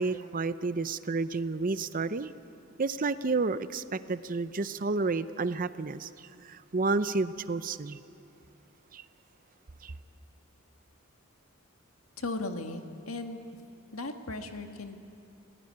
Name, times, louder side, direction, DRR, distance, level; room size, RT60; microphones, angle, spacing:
voice 1, 0.0-2.3 2.8-6.1 6.4-8.0 8.9-9.0 9.8-9.9, right 3 dB, 40° right, 13 dB, 0.7 m, -30 dB
voice 2, 12.2-13.4 13.9-15.0, left 2 dB, 85° left, 5 dB, 1.8 m, -37 dB
29.0 x 17.5 x 9.8 m, 2.7 s
head